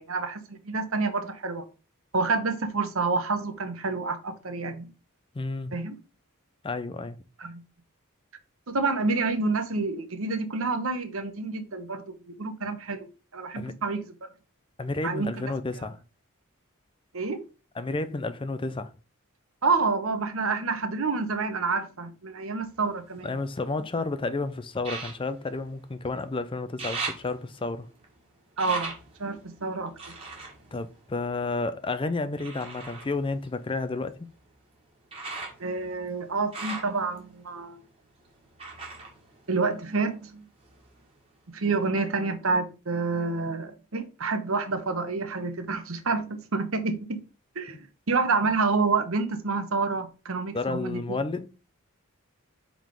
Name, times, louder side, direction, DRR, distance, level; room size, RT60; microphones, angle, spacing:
voice 1, 0.0-1.7 2.1-4.9 5.7-6.0 7.4-7.5 8.7-13.1 13.3-14.1 15.0-15.5 17.1-17.4 19.6-23.4 28.6-28.9 29.2-29.9 35.6-37.8 39.5-40.4 41.5-47.2 47.5-47.8 48.1-51.2, right 4 dB, 70° right, 1.0 m, -28 dB
voice 2, 5.3-5.7 6.6-7.2 13.6-13.7 14.8-16.0 17.8-18.9 23.2-27.9 30.7-34.2 50.5-51.5, left 3 dB, 25° left, 0.5 m, -31 dB
sound 1, 22.6-24.0 24.8-26.3 26.6-31.7 32.4-40.2 40.5-41.4 41.8-41.9, right 3 dB, 25° right, 1.9 m, -41 dB
5.1 x 3.8 x 5.1 m
head